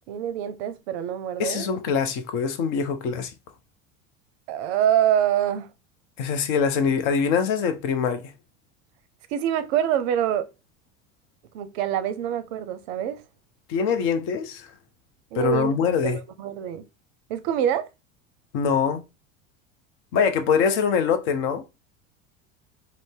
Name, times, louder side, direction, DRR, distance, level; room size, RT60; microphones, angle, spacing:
voice 1, 0.1-1.7 4.5-5.7 9.3-10.5 11.5-13.2 15.3-15.7 16.0-16.9 17.3-17.9, right 10 dB, 55° right, 0.5 m, -25 dB
voice 2, 1.4-3.3 6.2-8.3 13.7-14.7 15.3-16.2 18.5-19.0 20.1-21.6, left 6 dB, 50° left, 0.6 m, -23 dB
2.6 x 2.0 x 3.4 m
hypercardioid pair, 80°, 39 cm